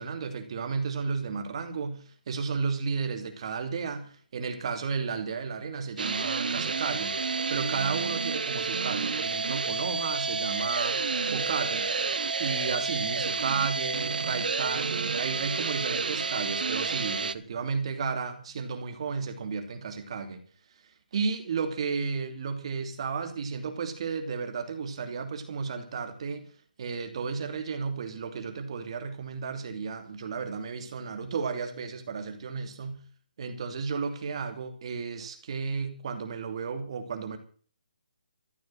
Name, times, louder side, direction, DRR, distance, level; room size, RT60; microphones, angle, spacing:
voice 1, 0.0-7.2 7.5-11.0 11.3-11.8 12.4-20.4 21.1-26.5 26.8-33.0 33.4-37.4, right 5 dB, 40° right, 7 dB, 2.9 m, -33 dB
sound 1, 6.0-17.3, right 4 dB, 75° right, 0.9 m, -30 dB
14.5 x 12.5 x 6.4 m, 0.43 s
hypercardioid pair, 170°, 5 cm